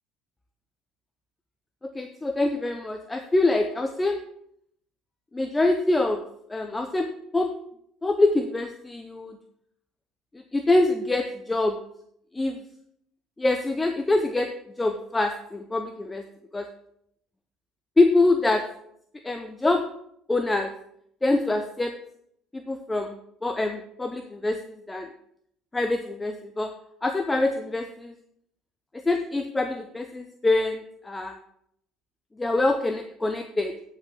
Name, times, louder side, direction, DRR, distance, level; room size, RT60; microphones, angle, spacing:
voice 1, 1.9-4.2 5.3-6.2 6.5-7.1 7.3-7.5 8.0-9.4 10.5-11.8 12.3-12.6 13.4-14.5 14.8-16.2 16.5-16.7 18.0-18.6 19.2-19.8 20.3-20.7 21.2-21.9 22.5-25.1 25.7-26.7 27.0-28.1 28.9-31.4 32.4-33.7, left 2 dB, 15° left, 6 dB, 0.7 m, -25 dB
14.5 x 5.7 x 3.8 m, 0.72 s
supercardioid pair, 110°, 0 cm